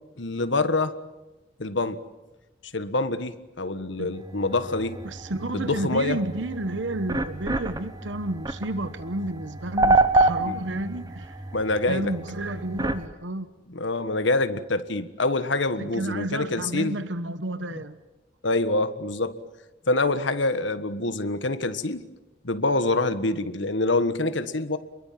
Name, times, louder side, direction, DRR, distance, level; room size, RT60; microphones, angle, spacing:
voice 1, 0.2-0.9 1.6-2.0 2.6-5.0 5.5-6.2 9.8-9.9 10.4-10.6 11.5-12.1 13.7-17.0 18.4-19.4 19.9-22.1 22.4-24.8, left 2 dB, 80° left, 1.5 m, -26 dB
sound 1, 4.1-13.1, right 2 dB, 20° right, 1.2 m, -28 dB
voice 2, 5.0-11.4 11.9-13.5 15.8-18.0, right 1 dB, 80° right, 1.2 m, -31 dB
28.5 x 22.0 x 7.6 m
head